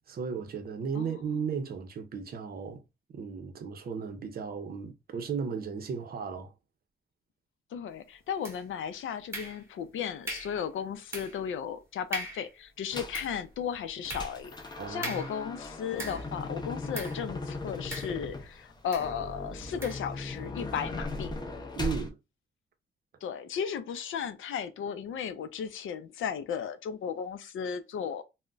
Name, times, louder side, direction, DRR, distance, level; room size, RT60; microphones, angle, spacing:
voice 1, 0.1-2.8 3.1-6.5 14.8-15.3 21.7-22.2, right 6 dB, 45° right, 0.6 m, -35 dB
voice 2, 7.7-21.3 23.2-28.2, left 7 dB, 75° left, 0.5 m, -35 dB
sound 1, 8.4-8.8 9.3-9.9 10.3-10.6 11.1-11.5 11.8-11.9 12.1-12.5 12.9-16.4 16.9-17.3 17.9-18.5 18.9-19.1 19.8-20.1, right 1 dB, 10° right, 0.8 m, -40 dB
sound 2, 12.9-13.3 13.7-22.1, left 2 dB, 20° left, 0.5 m, -38 dB
2.3 x 2.1 x 3.8 m
wide cardioid pair, 155°, 21 cm